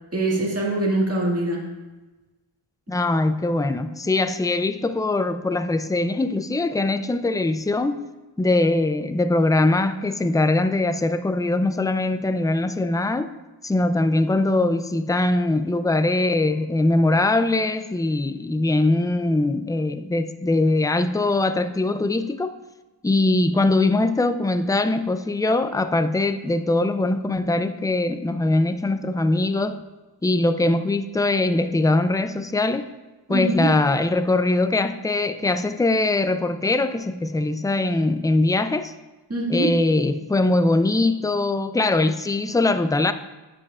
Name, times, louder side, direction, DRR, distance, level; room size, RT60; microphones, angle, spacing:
voice 1, 0.1-1.7 33.3-33.7 39.3-39.7, right 2 dB, 30° right, 1.9 m, -23 dB
voice 2, 2.9-8.0 8.4-13.3 13.6-22.5 23.0-29.8 30.2-32.9 33.3-38.9 39.5-43.1, left 2 dB, 10° left, 0.3 m, -22 dB
11.0 x 7.6 x 2.4 m
wide cardioid pair, 75°, 48 cm